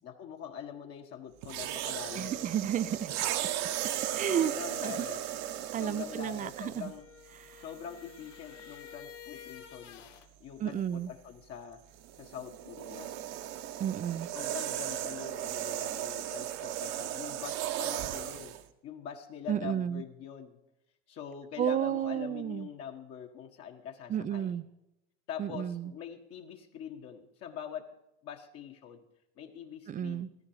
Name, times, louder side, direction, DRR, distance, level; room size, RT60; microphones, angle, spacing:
voice 1, 0.0-2.3 4.3-5.2 5.8-7.0 7.6-10.1 10.4-11.8 12.1-13.1 14.3-18.6 18.8-20.6 21.1-24.6 25.3-27.9 28.2-29.1 29.4-30.2, left 8 dB, 40° left, 3 dB, 1.5 m, -44 dB
sound 1, 1.4-7.0 7.8-8.0 11.9-18.6, right 12 dB, 50° right, 1.2 m, -36 dB
voice 2, 2.1-3.1 4.1-4.5 4.8-5.1 5.7-6.9 7.4-7.6 10.6-11.1 13.8-14.3 19.5-20.0 21.6-22.7 24.1-24.6 25.4-25.9 29.9-30.3, right 10 dB, 25° right, 16 dB, 0.5 m, -32 dB
sound 2, 6.7-10.3, left 9 dB, 85° left, 1.4 m, -50 dB
15.5 x 14.0 x 4.9 m, 0.87 s
supercardioid pair, 115°, 35 cm